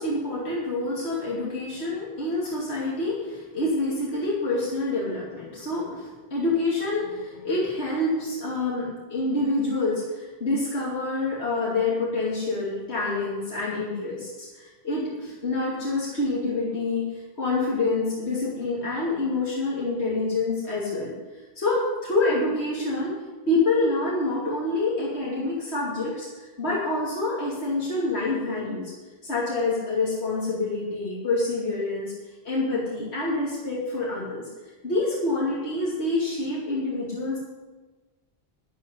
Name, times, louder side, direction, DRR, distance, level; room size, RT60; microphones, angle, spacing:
voice 1, 0.0-21.2 21.5-23.1 23.5-28.9 29.2-32.1 32.4-34.5 34.8-37.4, left 2 dB, 80° left, -6 dB, 3.0 m, -27 dB
14.0 x 6.2 x 9.9 m, 1.2 s
omnidirectional pair, 1.1 m